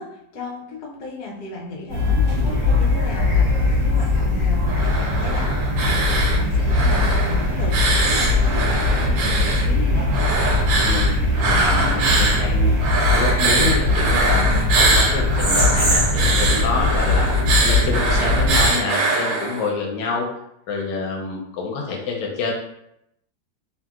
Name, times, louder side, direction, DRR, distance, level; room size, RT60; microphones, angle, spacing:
voice 1, 0.0-10.1, left 3 dB, 70° left, -2 dB, 1.3 m, -35 dB
sound 1, 1.9-18.7, left 2 dB, 50° right, 1.2 m, -20 dB
sound 2, 4.7-6.4 6.7-9.7 10.1-12.4 12.8-19.7, right 3 dB, 85° right, 1.4 m, -23 dB
voice 2, 10.7-12.7 13.1-17.3 17.6-20.3 20.7-22.5, left 4 dB, 85° left, 0 dB, 1.3 m, -27 dB
2.9 x 2.7 x 2.3 m, 0.79 s
omnidirectional pair, 2.0 m